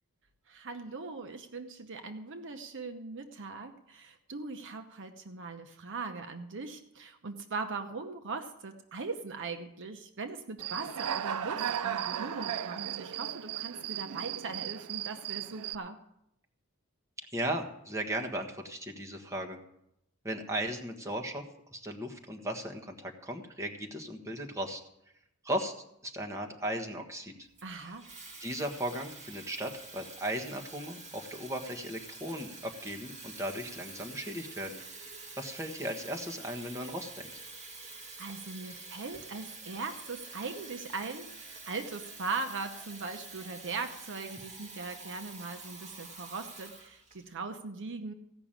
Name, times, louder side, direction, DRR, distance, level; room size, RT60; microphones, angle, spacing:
voice 1, 0.5-16.0 27.6-28.1 37.9-48.1, right 4 dB, 55° right, 7 dB, 0.9 m, -40 dB
Human voice / Cricket, 10.6-15.8, right 10 dB, 90° right, 0.4 m, -36 dB
voice 2, 17.2-19.6 20.2-24.8 25.4-27.5 27.8-27.9 28.4-37.4, right 1 dB, 15° right, 1 dB, 1.4 m, -37 dB
Water tap faucet / Fill (with liquid), 27.6-47.3, right 3 dB, 30° right, 2.0 m, -48 dB
16.0 x 6.0 x 8.9 m, 0.80 s
head